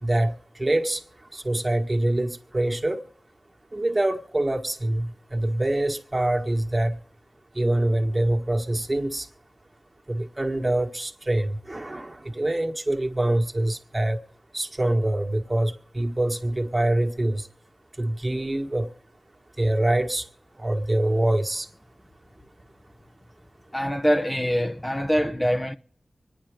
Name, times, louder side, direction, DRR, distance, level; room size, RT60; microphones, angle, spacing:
voice 1, 0.0-3.0 3.7-7.0 7.5-9.3 10.1-14.2 14.5-17.5 18.0-18.9 19.6-20.3 20.5-21.7, right 1 dB, 30° right, 1.4 m, -25 dB
voice 2, 23.7-25.7, equal, 15° left, 0.7 m, -24 dB
25.0 x 10.5 x 3.6 m
cardioid pair, 50°, 0 cm